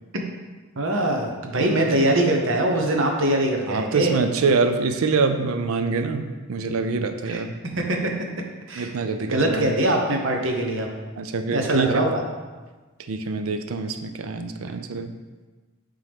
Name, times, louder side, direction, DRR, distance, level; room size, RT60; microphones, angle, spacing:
voice 1, 0.8-4.2 7.3-7.4 7.8-8.1 8.7-8.9 9.2-10.9 11.5-12.2, right 1 dB, 65° right, 2 dB, 0.9 m, -22 dB
voice 2, 1.6-1.9 3.7-7.5 8.8-9.7 11.2-12.1 13.1-15.1, right 4 dB, 80° right, 8 dB, 0.5 m, -25 dB
8.2 x 3.7 x 3.5 m, 1.3 s
head